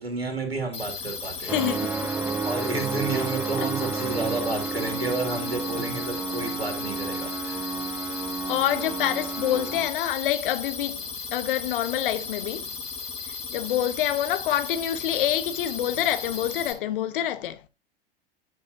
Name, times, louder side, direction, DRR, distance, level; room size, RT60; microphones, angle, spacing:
voice 1, 0.0-1.9 2.4-7.8, right 3 dB, 85° right, 2.7 m, -31 dB
sound 1, 0.7-16.7, left 5 dB, 20° left, 3.8 m, -36 dB
voice 2, 1.4-2.1 8.5-12.7 13.5-17.6, left 12 dB, 60° left, 1.3 m, -27 dB
sound 2, 1.5-9.9, right 5 dB, 5° right, 0.4 m, -31 dB
12.0 x 6.6 x 2.8 m
figure-of-eight pair, 85°, 30 cm